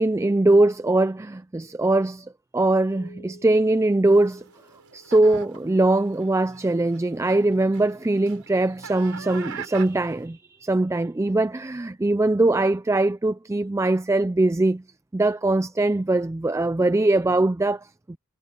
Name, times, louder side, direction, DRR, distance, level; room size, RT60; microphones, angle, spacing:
voice 1, 0.0-4.4 4.9-14.8 15.1-18.2, right 2 dB, 15° right, 0.3 m, -21 dB
Keyboard (musical), 2.9-5.9, equal, 50° left, 6.1 m, -52 dB
sound 1, 4.1-10.3, right 6 dB, 85° right, 4.5 m, -43 dB
head